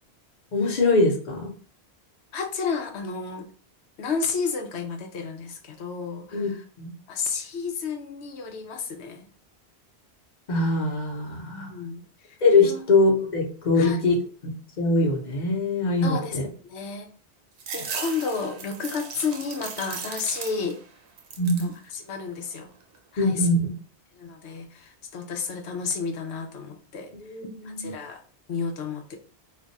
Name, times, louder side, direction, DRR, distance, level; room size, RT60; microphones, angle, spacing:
voice 1, 0.5-1.5 6.3-6.9 10.5-11.7 12.4-14.2 14.4-16.4 21.4-21.6 23.2-23.6 27.2-27.9, left 3 dB, 45° left, 1 dB, 0.8 m, -23 dB
voice 2, 2.3-3.5 4.0-6.6 7.1-9.3 11.5-12.4 12.6-12.8 13.7-14.0 16.0-16.4 16.6-17.1 17.7-20.8 21.6-22.7 23.1-23.5 24.2-27.1 27.4-28.2 28.5-29.2, left 5 dB, 85° left, 5 dB, 0.9 m, -31 dB
sound 1, 17.6-20.9 21.2-21.8 22.2-23.0, right 6 dB, 80° right, 0.9 m, -37 dB
2.5 x 2.3 x 3.9 m, 0.41 s
omnidirectional pair, 1.1 m